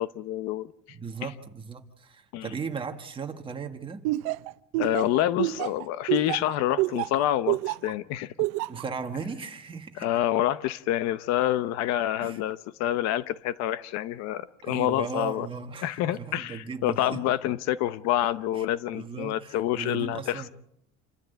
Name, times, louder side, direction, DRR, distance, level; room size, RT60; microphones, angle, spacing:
voice 1, 0.0-0.7 2.3-2.5 4.8-8.3 10.0-15.5 15.8-20.5, left 13 dB, 60° left, 15 dB, 0.8 m, -27 dB
voice 2, 0.9-4.0 8.7-10.1 12.2-12.4 14.6-17.2 18.5-18.6 18.9-20.5, right 5 dB, 15° right, 5 dB, 1.6 m, -37 dB
Laughter, 4.0-7.9 8.4-8.8, right 18 dB, 90° right, 0.7 m, -27 dB
28.0 x 14.0 x 8.1 m, 0.81 s
cardioid pair, 175°, 29 cm